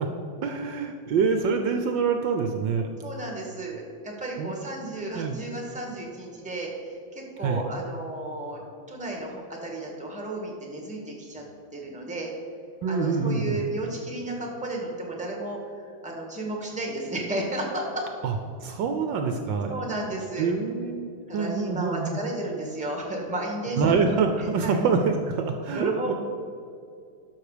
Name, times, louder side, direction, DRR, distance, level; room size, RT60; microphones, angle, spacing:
voice 1, 0.4-2.9 4.4-4.6 5.1-5.4 7.4-7.6 12.8-13.6 18.2-18.3 18.6-19.7 20.4-22.2 23.8-26.1, right 5 dB, 70° right, 5 dB, 1.3 m, -26 dB
voice 2, 3.0-8.6 8.9-11.4 11.7-12.3 12.9-15.6 16.0-18.0 19.7-20.5 21.3-23.9 24.4-24.8 25.7-26.1, right 2 dB, 5° right, 0 dB, 1.5 m, -33 dB
12.0 x 6.5 x 5.0 m, 2.4 s
omnidirectional pair, 2.3 m